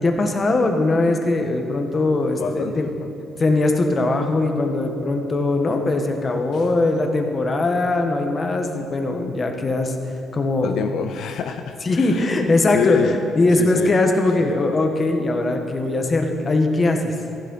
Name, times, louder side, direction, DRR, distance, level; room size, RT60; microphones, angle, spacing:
voice 1, 0.0-2.9 3.4-9.9 10.3-10.8 11.8-17.1, left 2 dB, 30° left, 4 dB, 1.5 m, -20 dB
voice 2, 2.4-3.1 6.5-6.7 10.6-12.3 12.7-13.2 13.5-13.9 14.4-14.6, left 8 dB, 65° left, 7 dB, 0.6 m, -26 dB
15.0 x 11.5 x 5.6 m, 2.7 s
cardioid pair, 115°, 0 cm